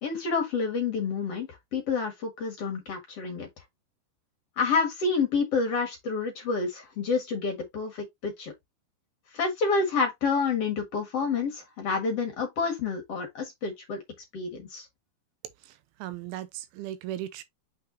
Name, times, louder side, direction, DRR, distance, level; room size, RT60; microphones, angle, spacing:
voice 1, 0.0-3.5 4.6-8.5 9.3-14.0 14.3-14.9, left 4 dB, 50° left, 2.1 m, -28 dB
voice 2, 16.0-17.4, right 13 dB, 90° right, 2.6 m, -37 dB
6.8 x 5.7 x 2.7 m
omnidirectional pair, 4.4 m